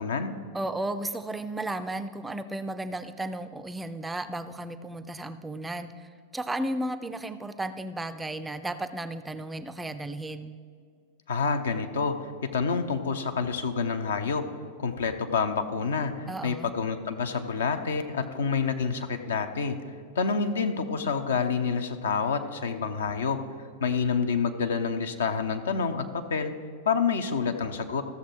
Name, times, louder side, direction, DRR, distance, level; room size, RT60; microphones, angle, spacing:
voice 1, 0.0-0.4 11.3-14.4 14.8-19.8 20.2-23.4 23.8-26.5 26.8-28.0, left 5 dB, 65° left, 7 dB, 0.7 m, -28 dB
voice 2, 0.5-10.6 16.3-16.7, right 1 dB, 10° right, 10 dB, 0.4 m, -34 dB
14.0 x 6.9 x 4.5 m, 2.1 s
figure-of-eight pair, 90°, 0 cm